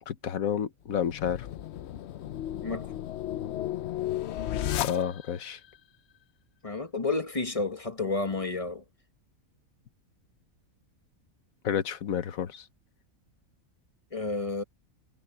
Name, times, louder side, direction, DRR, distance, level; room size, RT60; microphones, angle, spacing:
voice 1, 0.1-1.5 4.8-5.6 11.6-12.6, left 8 dB, 75° left, 1.4 m, -30 dB
sound 1, 0.9-5.5, left 12 dB, 60° left, 0.8 m, -34 dB
voice 2, 6.6-8.8 14.1-14.6, left 3 dB, 25° left, 1.4 m, -31 dB
omnidirectional pair, 1.5 m